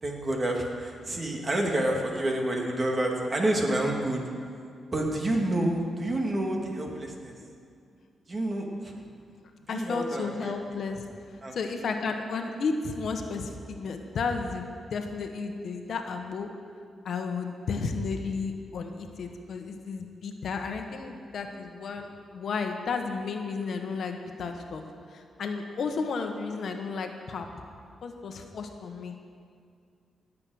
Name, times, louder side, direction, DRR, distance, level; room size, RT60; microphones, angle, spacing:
voice 1, 0.0-4.2 4.9-7.3 8.3-9.1 9.6-10.8 11.4-11.6, right 1 dB, 35° right, 0 dB, 2.4 m, -29 dB
voice 2, 9.7-11.0 11.5-16.5 17.0-24.8 25.1-27.5 28.0-29.1, left 4 dB, 65° left, 5 dB, 1.2 m, -33 dB
18.0 x 7.6 x 6.4 m, 2.3 s
cardioid pair, 85°, 0 cm